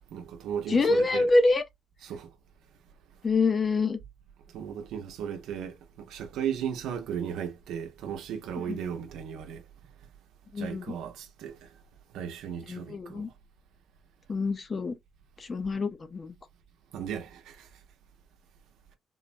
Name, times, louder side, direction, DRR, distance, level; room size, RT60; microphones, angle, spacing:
voice 1, 0.1-1.3 2.0-2.3 4.5-9.6 10.6-11.7 12.1-13.2 16.9-17.7, right 8 dB, 85° right, 0.7 m, -36 dB
voice 2, 0.7-1.6 3.2-4.0 8.7-8.8 10.5-10.8 12.7-13.3 14.3-15.0 15.4-16.3, left 3 dB, 35° left, 0.5 m, -26 dB
3.9 x 2.1 x 2.5 m
cardioid pair, 90°, 0 cm